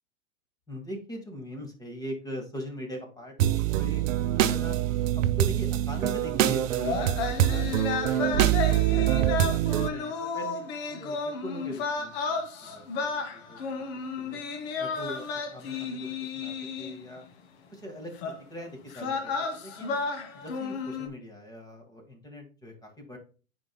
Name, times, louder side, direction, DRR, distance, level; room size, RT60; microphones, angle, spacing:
voice 1, 0.7-4.8 5.2-8.5 8.9-13.0 13.3-13.8 14.2-14.4 14.8-17.3 17.7-20.0 20.3-23.2, equal, 10° left, 3 dB, 1.7 m, -41 dB
sound 1, 3.4-9.9, right 12 dB, 70° right, 0.7 m, -25 dB
sound 2, 6.7-17.2 18.2-18.4 18.9-21.1, left 4 dB, 50° left, 1.3 m, -33 dB
9.5 x 4.6 x 2.2 m, 0.35 s
hypercardioid pair, 120°, 40 cm